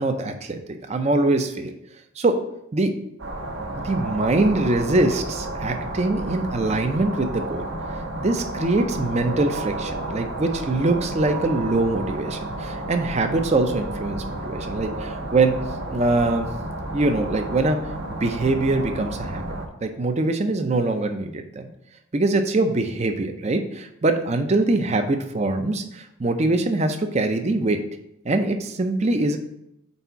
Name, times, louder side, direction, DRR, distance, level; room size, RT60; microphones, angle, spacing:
voice 1, 0.0-1.7 2.2-2.4 2.7-2.9 3.7-15.6 15.9-16.5 16.9-17.8 18.1-19.4 19.8-21.7 22.1-27.8 28.2-29.4, right 2 dB, 30° right, 7 dB, 0.4 m, -23 dB
sound 1, 3.2-19.7, right 2 dB, 60° right, 0.9 m, -32 dB
4.5 x 4.1 x 5.6 m, 0.80 s
head